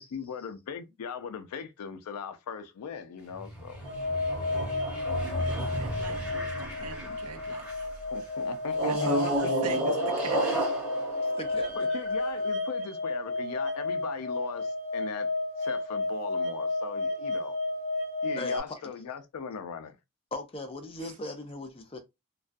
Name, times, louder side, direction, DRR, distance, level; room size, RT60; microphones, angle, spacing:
voice 1, 0.0-4.0 8.1-9.8 11.8-15.3 15.6-17.6 18.2-20.0, left 6 dB, 90° left, 0.4 m, -39 dB
sound 1, 3.3-7.9 8.7-12.3, right 1 dB, 5° right, 0.9 m, -32 dB
sound 2, 3.8-18.6, left 2 dB, 55° right, 0.9 m, -32 dB
voice 2, 5.6-7.7 8.8-10.6, right 2 dB, 75° right, 0.6 m, -41 dB
voice 3, 11.2-11.9 18.4-19.0 20.3-22.0, left 2 dB, 25° left, 0.5 m, -39 dB
2.3 x 2.2 x 2.5 m
head